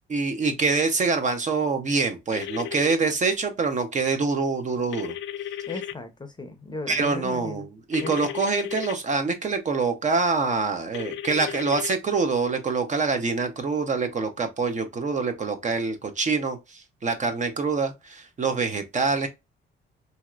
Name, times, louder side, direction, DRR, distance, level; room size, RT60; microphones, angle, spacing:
voice 1, 0.1-5.1 6.9-16.6 17.0-19.3, right 4 dB, 40° right, 0.7 m, -25 dB
sound 1, 2.3-2.9 4.9-5.9 7.9-8.9 10.9-12.0, left 11 dB, 70° left, 0.4 m, -34 dB
voice 2, 5.7-7.7 8.0-8.4, left 3 dB, 20° left, 0.6 m, -36 dB
3.0 x 2.8 x 2.3 m
cardioid pair, 90°, 20 cm